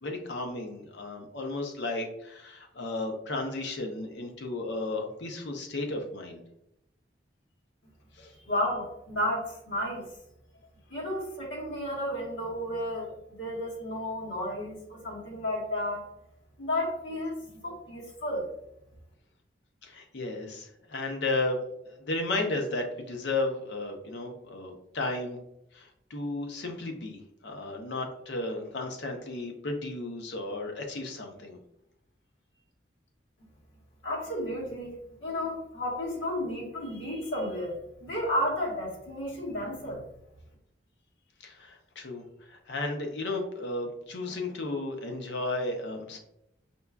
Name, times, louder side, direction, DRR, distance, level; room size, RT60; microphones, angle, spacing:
voice 1, 0.0-6.4 8.2-8.3 19.8-25.4 25.7-31.6 41.4-46.2, left 2 dB, 65° left, 3 dB, 0.6 m, -34 dB
voice 2, 8.5-10.0 10.9-13.1 13.4-16.1 16.6-18.5 34.0-34.9 35.2-40.0, left 1 dB, 85° left, -4 dB, 1.4 m, -32 dB
5.2 x 2.3 x 2.2 m, 0.79 s
head